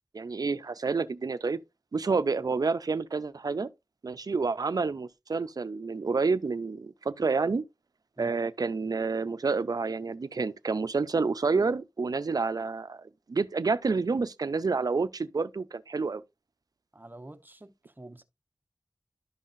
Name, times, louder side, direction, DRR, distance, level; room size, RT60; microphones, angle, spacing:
voice 1, 0.1-1.6 1.9-3.7 4.0-7.6 8.2-16.2, right 4 dB, 75° right, 0.5 m, -29 dB
voice 2, 16.9-18.2, right 2 dB, 30° right, 0.9 m, -48 dB
11.5 x 5.6 x 2.5 m
wide cardioid pair, 45°, 6 cm